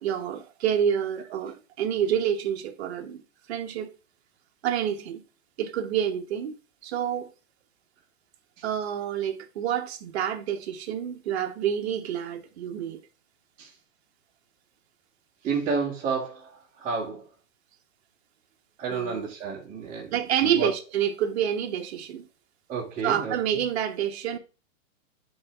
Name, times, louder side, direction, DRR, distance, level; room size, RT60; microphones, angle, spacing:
voice 1, 0.0-3.2 3.5-3.9 4.6-5.2 5.6-6.6 6.8-7.3 8.6-13.0 18.9-19.3 20.1-22.3 23.0-24.4, right 9 dB, 55° right, 1.2 m, -28 dB
voice 2, 15.4-17.3 18.8-20.1 20.4-20.7 22.7-23.6, right 5 dB, 20° right, 2.0 m, -31 dB
9.3 x 4.1 x 3.5 m
hypercardioid pair, 155°, 39 cm